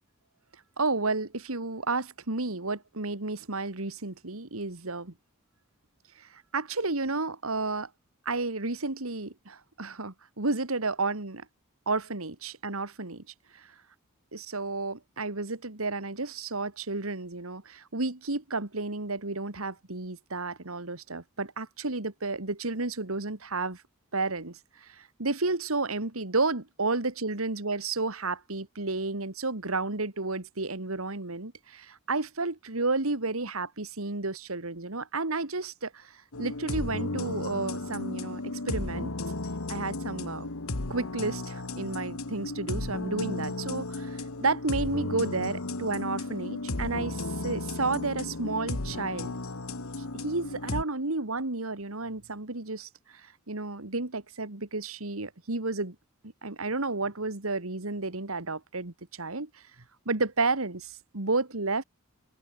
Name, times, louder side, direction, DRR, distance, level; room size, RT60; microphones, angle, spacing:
voice 1, 0.8-5.1 6.2-7.9 8.3-11.5 11.9-13.2 13.5-13.6 14.3-23.8 24.1-39.1 39.7-40.5 40.9-49.3 50.1-52.9 53.2-56.0 56.4-59.6 60.1-61.8, right 3 dB, 90° right, 2.4 m, -32 dB
sound 1, 36.3-50.8, left 2 dB, 90° left, 1.7 m, -34 dB
open air
head